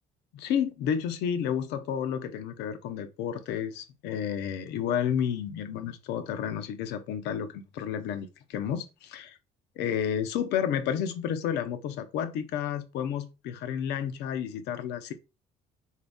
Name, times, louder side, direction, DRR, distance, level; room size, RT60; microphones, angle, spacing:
voice 1, 0.3-9.4 9.8-15.1, left 8 dB, 85° left, 0.7 m, -31 dB
3.9 x 2.8 x 3.5 m
cardioid pair, 110°, 17 cm